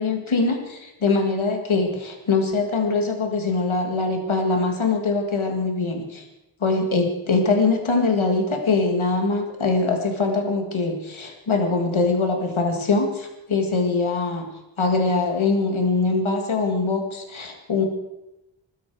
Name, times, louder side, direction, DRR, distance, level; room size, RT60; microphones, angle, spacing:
voice 1, 0.0-6.2 6.6-14.4 14.8-17.9, left 3 dB, 90° left, 3 dB, 1.9 m, -22 dB
21.0 x 12.5 x 4.6 m, 0.93 s
wide cardioid pair, 55°, 46 cm